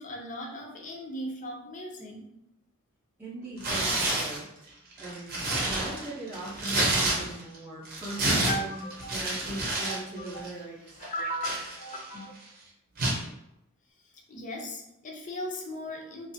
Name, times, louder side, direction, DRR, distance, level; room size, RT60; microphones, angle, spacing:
voice 1, 0.0-2.3 8.5-9.1 9.5-10.4 11.0-12.4 14.0-16.3, equal, 35° left, 0 dB, 0.5 m, -37 dB
voice 2, 3.2-4.5 5.0-11.0, right 2 dB, 10° right, -10 dB, 0.6 m, -40 dB
Tearing, 3.6-4.4 4.9-7.6 7.9-10.0 10.3-10.5 11.0-12.2 13.0-13.2, right 2 dB, 45° right, 0.7 m, -29 dB
2.5 x 2.3 x 2.6 m, 0.85 s
head